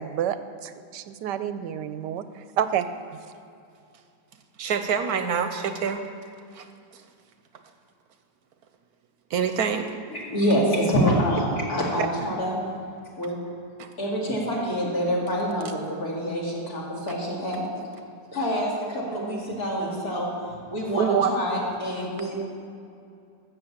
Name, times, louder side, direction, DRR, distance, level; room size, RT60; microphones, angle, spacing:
voice 1, 0.0-2.9, right 9 dB, 85° right, 11 dB, 1.3 m, -29 dB
voice 2, 4.6-6.0 6.6-6.7 9.3-9.9 13.8-13.9 21.0-21.3, right 7 dB, 70° right, 8 dB, 1.1 m, -25 dB
voice 3, 10.1-12.5 13.2-13.3 14.0-17.6 18.3-20.3 20.7-22.4, equal, 60° left, -4 dB, 3.1 m, -26 dB
13.5 x 7.6 x 7.2 m, 2.4 s
omnidirectional pair, 1.8 m